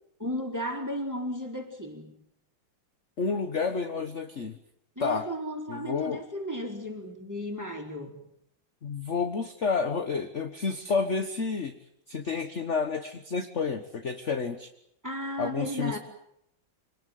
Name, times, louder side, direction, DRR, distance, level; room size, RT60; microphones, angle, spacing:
voice 1, 0.2-2.1 5.0-8.2 15.0-16.0, equal, 10° right, 2 dB, 4.1 m, -34 dB
voice 2, 3.2-4.6 5.0-5.3 5.7-6.2 8.8-11.7 12.1-14.7 15.4-16.0, left 5 dB, 40° left, 7 dB, 1.4 m, -30 dB
26.0 x 19.0 x 9.3 m, 0.75 s
omnidirectional pair, 2.3 m